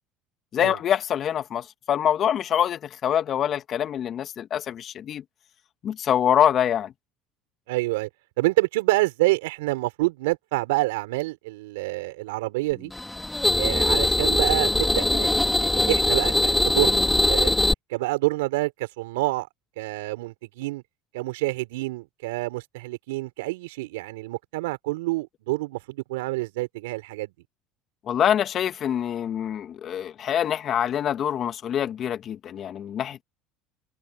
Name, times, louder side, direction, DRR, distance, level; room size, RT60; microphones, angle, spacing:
voice 1, 0.5-5.2 5.8-6.9 28.1-33.2, left 9 dB, 45° left, 2.1 m, -25 dB
voice 2, 7.7-8.1 8.4-12.9 13.6-15.3 15.6-17.5 17.9-19.5 19.8-20.8 21.1-27.3, right 21 dB, 85° right, 5.2 m, -27 dB
sound 1, 12.9-17.7, left 2 dB, 10° left, 2.9 m, -22 dB
supercardioid pair, 85°, 0 cm